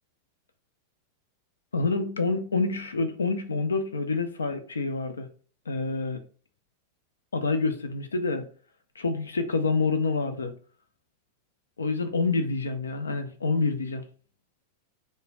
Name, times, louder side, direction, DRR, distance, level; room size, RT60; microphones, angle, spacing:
voice 1, 1.7-5.3 5.7-6.2 7.3-8.5 9.0-10.5 11.8-14.0, left 3 dB, 70° left, 0.4 m, -27 dB
2.3 x 2.1 x 3.2 m
figure-of-eight pair, 90°, 0 cm